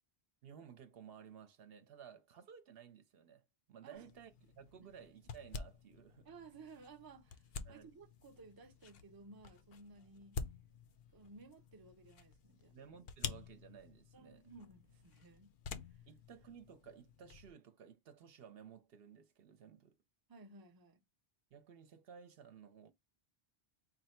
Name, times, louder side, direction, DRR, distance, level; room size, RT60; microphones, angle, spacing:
voice 1, 0.4-6.3 7.6-7.9 12.7-14.5 16.1-20.0 21.5-22.9, right 7 dB, 65° right, 0.8 m, -56 dB
sound 1, 3.9-17.5, left 5 dB, 65° left, 0.7 m, -50 dB
voice 2, 6.2-10.4 11.1-12.7 14.1-15.5 15.9-16.0 20.3-21.0, right 3 dB, 30° right, 0.4 m, -57 dB
4.1 x 2.1 x 4.2 m
omnidirectional pair, 1.1 m